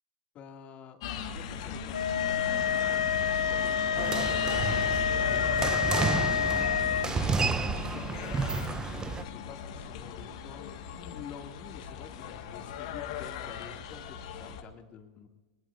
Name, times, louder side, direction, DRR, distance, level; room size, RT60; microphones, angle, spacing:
voice 1, 0.3-15.3, left 7 dB, 35° left, 4 dB, 2.5 m, -49 dB
sound 1, 1.0-14.6, left 8 dB, 60° left, 1.7 m, -37 dB
sound 2, 1.9-7.1, left 8 dB, 80° left, 0.4 m, -28 dB
sound 3, 4.0-9.2, right 4 dB, 20° right, 0.9 m, -31 dB
23.5 x 20.5 x 2.7 m, 1.2 s
figure-of-eight pair, 95°, 4 cm